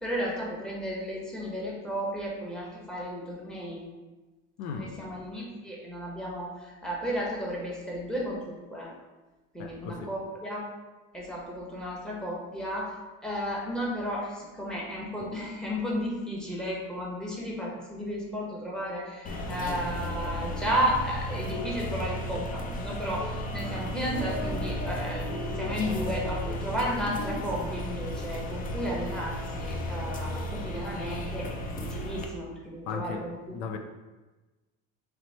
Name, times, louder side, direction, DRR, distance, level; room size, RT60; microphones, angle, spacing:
voice 1, 0.0-3.8 4.7-8.9 9.5-10.6 11.1-12.9 13.2-33.6, equal, ahead, -4 dB, 1.1 m, -33 dB
voice 2, 4.6-4.9 9.6-10.1 32.9-33.8, left 5 dB, 75° left, 6 dB, 0.5 m, -36 dB
sound 1, 19.3-32.3, equal, 25° left, 0.5 m, -34 dB
3.1 x 3.1 x 4.1 m, 1.2 s
supercardioid pair, 120°, 32 cm